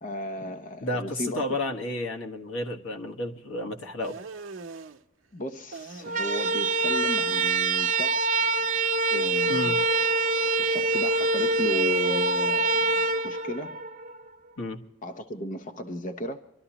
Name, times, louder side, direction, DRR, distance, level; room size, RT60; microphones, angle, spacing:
voice 1, 0.0-1.6 5.3-8.4 9.1-9.8 10.6-13.8 15.0-16.4, left 1 dB, 40° left, 0.7 m, -35 dB
voice 2, 0.8-4.2 9.5-9.8 14.6-14.8, left 1 dB, 80° left, 1.5 m, -31 dB
sound 1, 4.0-5.0 5.7-6.5 6.7-7.5, right 4 dB, 70° right, 0.8 m, -43 dB
sound 2, 6.0-14.2, right 3 dB, 40° right, 0.5 m, -25 dB
25.5 x 12.5 x 2.9 m
head